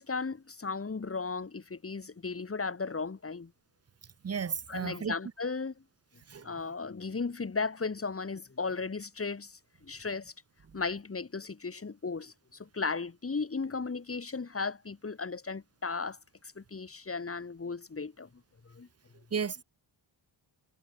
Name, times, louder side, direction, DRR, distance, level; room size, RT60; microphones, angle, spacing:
voice 1, 0.0-3.5 4.7-5.7 6.4-10.3 10.7-18.3 18.6-18.9, left 4 dB, 30° left, 6.4 m, -36 dB
voice 2, 4.2-5.1 6.3-6.5 19.3-19.6, right 6 dB, 30° right, 1.1 m, -33 dB
wide cardioid pair, 135°, 47 cm